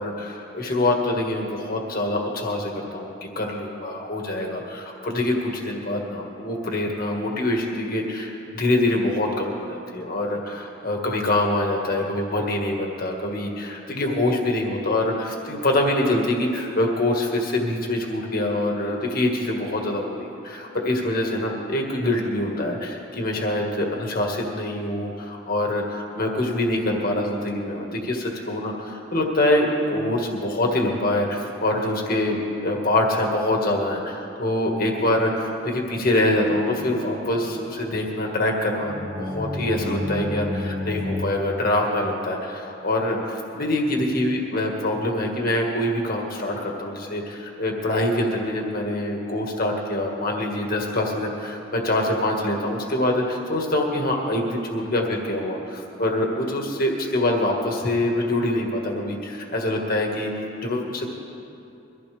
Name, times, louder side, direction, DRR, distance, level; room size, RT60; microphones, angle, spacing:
voice 1, 0.0-60.3 60.6-61.1, left 1 dB, 50° left, 0 dB, 1.8 m, -25 dB
sound 1, 36.2-41.2, left 1 dB, 20° right, 1.8 m, -31 dB
23.0 x 15.0 x 3.5 m, 2.7 s
head